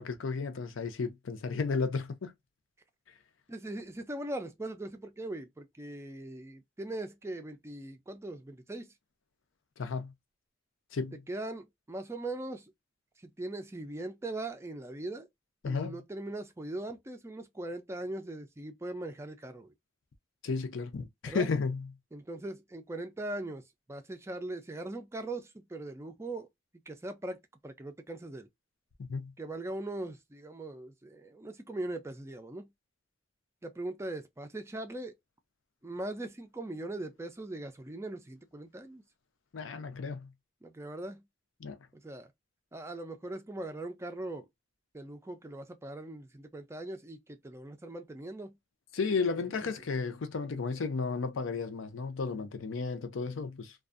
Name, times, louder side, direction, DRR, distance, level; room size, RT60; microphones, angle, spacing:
voice 1, 0.0-2.3 9.8-10.1 10.9-11.2 15.6-16.0 20.4-21.9 29.0-29.3 39.5-40.3 41.6-41.8 48.9-53.7, left 4 dB, 80° left, 0.5 m, -33 dB
voice 2, 3.5-8.9 11.3-12.7 13.2-15.3 15.6-19.7 21.2-21.5 22.1-23.6 23.9-26.5 26.9-27.4 27.6-28.5 29.4-32.7 33.6-35.1 35.8-39.0 40.6-41.2 41.9-42.3 42.7-44.5 44.9-48.5 49.6-49.7, right 2 dB, 15° right, 0.4 m, -40 dB
2.5 x 2.3 x 2.4 m
head